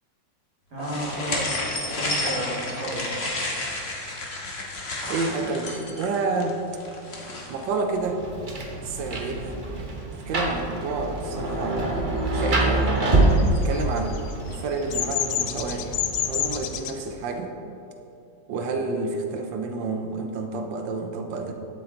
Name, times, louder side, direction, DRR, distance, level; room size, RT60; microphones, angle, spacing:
voice 1, 0.7-1.5 1.9-3.1, right 1 dB, 55° right, -7 dB, 2.9 m, -32 dB
sound 1, 0.8-7.7, left 2 dB, 40° left, 1.2 m, -31 dB
voice 2, 5.1-6.6 7.5-8.2 8.8-9.6 10.1-12.9 13.6-14.3 14.5-15.9 16.3-17.5 18.5-21.5, right 3 dB, 75° right, 5 dB, 1.5 m, -29 dB
Rain, 7.9-17.0, right 2 dB, 35° right, 0.9 m, -26 dB
Bird vocalization bird call bird song, 13.2-16.9, left 10 dB, 85° left, 0.7 m, -28 dB
12.0 x 7.5 x 3.8 m, 2.8 s
omnidirectional pair, 2.1 m